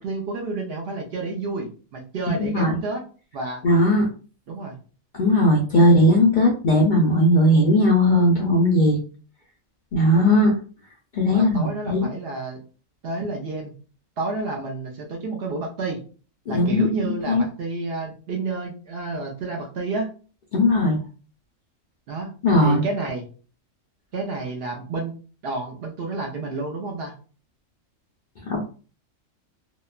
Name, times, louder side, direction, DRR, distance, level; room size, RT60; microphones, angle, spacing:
voice 1, 0.0-3.0 3.3-3.6 4.5-4.8 10.1-10.4 11.3-12.6 13.0-13.7 14.2-16.0 16.5-20.1 22.1-22.3 22.6-23.3 24.1-25.1 25.4-27.1, right 3 dB, 60° right, 0 dB, 0.7 m, -30 dB
voice 2, 2.4-2.8 3.6-4.1 5.1-9.0 9.9-10.5 11.1-12.1 16.5-17.4 20.5-21.0 22.4-22.8 28.5-28.6, left 1 dB, 55° left, -2 dB, 0.5 m, -18 dB
2.8 x 2.1 x 2.3 m, 0.38 s
omnidirectional pair, 1.3 m